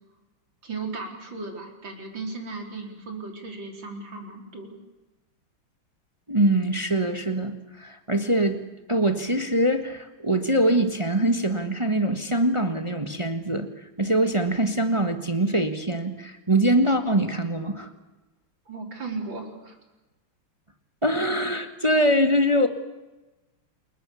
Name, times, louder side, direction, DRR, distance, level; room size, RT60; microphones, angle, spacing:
voice 1, 0.6-4.8 18.7-19.8, right 3 dB, 60° right, 3 dB, 4.7 m, -36 dB
voice 2, 6.3-8.6 8.9-17.9 21.0-22.7, right 1 dB, 15° right, 7 dB, 1.3 m, -23 dB
28.5 x 21.0 x 7.1 m, 1.1 s
omnidirectional pair, 2.3 m